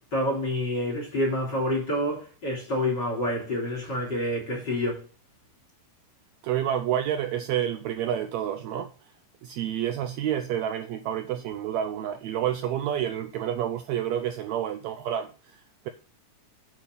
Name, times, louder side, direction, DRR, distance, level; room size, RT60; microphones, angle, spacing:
voice 1, 0.1-5.0, left 1 dB, 35° left, 4.0 m, -28 dB
voice 2, 6.4-8.9 9.4-15.9, right 10 dB, 80° right, 1.7 m, -29 dB
8.7 x 5.1 x 5.4 m
omnidirectional pair, 3.6 m